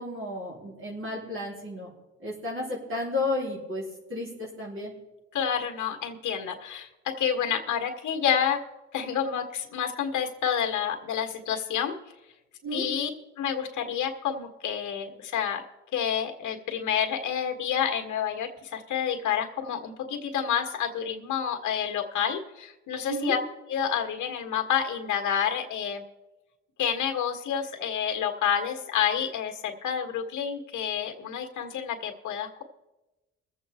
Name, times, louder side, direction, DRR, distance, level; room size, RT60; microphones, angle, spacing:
voice 1, 0.0-1.9 2.2-3.8 4.1-4.9 12.6-12.9 23.1-23.4, left 2 dB, 45° right, -5 dB, 3.8 m, -32 dB
voice 2, 5.3-8.6 8.9-11.9 12.7-13.1 13.4-15.6 15.9-23.4 23.7-26.0 26.8-32.6, left 8 dB, 80° left, 2 dB, 1.6 m, -29 dB
23.0 x 7.8 x 3.6 m, 1.1 s
cardioid pair, 90°, 30 cm